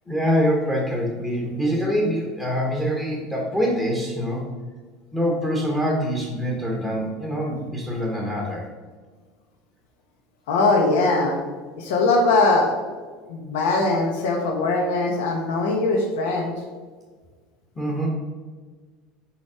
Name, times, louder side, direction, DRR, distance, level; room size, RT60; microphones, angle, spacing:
voice 1, 0.1-4.5 5.1-8.7 17.8-18.1, equal, 10° left, -3 dB, 1.0 m, -24 dB
voice 2, 10.5-11.4 11.8-12.7 13.3-16.5, left 3 dB, 85° left, 2 dB, 1.3 m, -21 dB
7.1 x 5.2 x 4.9 m, 1.5 s
cardioid pair, 175°, 0 cm